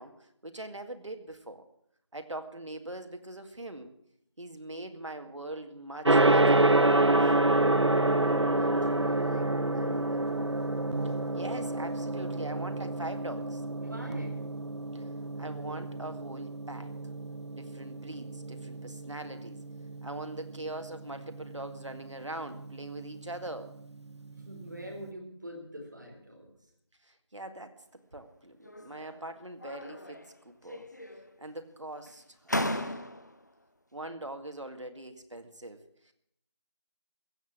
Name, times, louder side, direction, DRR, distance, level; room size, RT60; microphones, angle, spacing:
voice 1, 0.0-1.7 2.1-3.9 4.4-6.8 11.0-13.6 14.9-15.1 15.4-16.9 17.5-19.6 20.0-23.8 27.0-27.8 28.1-30.2 30.4-30.9 31.4-33.0 33.9-35.8, right 1 dB, 85° right, 7 dB, 2.1 m, -42 dB
Gong, 6.0-25.0, right 2 dB, 70° right, 1.1 m, -29 dB
voice 2, 8.0-9.5 9.7-10.5 13.8-14.4 24.3-26.7, equal, 40° right, 0 dB, 4.4 m, -43 dB
sound 1, 28.6-29.2 29.6-30.4 30.7-31.4 32.1-32.2 32.5-33.4, left 1 dB, 40° left, 0.8 m, -36 dB
15.0 x 8.1 x 8.7 m, 0.73 s
figure-of-eight pair, 180°, 15 cm